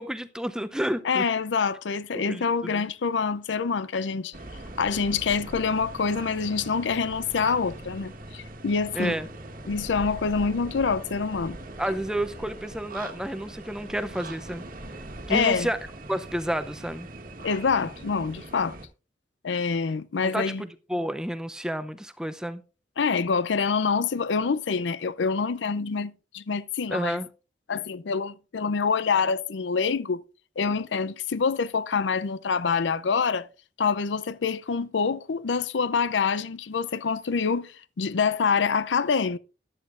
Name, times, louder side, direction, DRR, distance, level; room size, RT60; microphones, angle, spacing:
voice 1, 0.0-1.2 2.1-2.9 8.9-9.3 11.8-14.6 15.3-15.8 16.1-17.1 20.2-22.6 26.9-27.3, equal, 5° right, 0.6 m, -30 dB
voice 2, 1.0-4.3 4.8-9.1 9.6-11.6 15.3-15.7 17.4-18.8 19.4-20.6 23.0-27.2 27.7-30.2 30.6-33.5 33.8-39.4, left 5 dB, 85° left, 0.5 m, -26 dB
sound 1, 4.3-18.9, right 2 dB, 50° right, 1.4 m, -41 dB
14.0 x 11.0 x 2.5 m
head